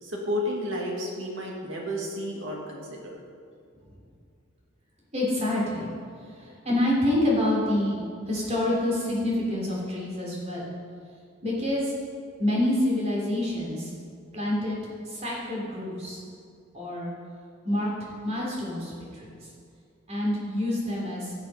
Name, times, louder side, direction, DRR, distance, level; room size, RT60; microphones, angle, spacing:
voice 1, 0.0-3.1, left 1 dB, 60° right, -2 dB, 2.5 m, -32 dB
voice 2, 5.1-5.9 6.2-10.7 11.4-11.9 12.4-13.9 14.3-14.8 15.0-16.2 16.7-17.1 17.6-17.9 18.2-19.3 20.1-21.3, left 1 dB, 30° right, -4 dB, 3.4 m, -27 dB
17.0 x 6.8 x 5.2 m, 2.4 s
head